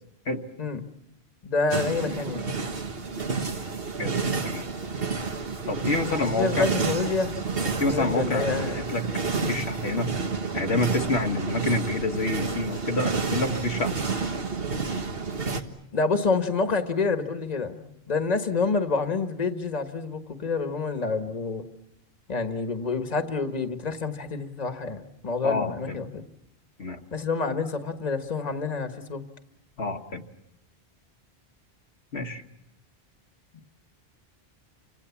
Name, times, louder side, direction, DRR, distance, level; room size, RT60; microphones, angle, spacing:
voice 1, 1.4-2.5 6.2-7.3 7.6-8.8 9.4-9.6 15.9-21.6 22.3-26.2 27.1-29.2, left 4 dB, 40° left, 7 dB, 1.5 m, -28 dB
sound 1, 1.7-15.6, right 4 dB, 65° right, 1.7 m, -30 dB
voice 2, 5.7-6.6 7.8-9.0 9.5-10.1 10.5-13.9 25.4-25.9 26.8-27.0 29.8-30.3 32.1-32.4, left 2 dB, 85° left, 3 dB, 1.7 m, -27 dB
29.5 x 25.5 x 7.2 m, 0.81 s
omnidirectional pair, 1.1 m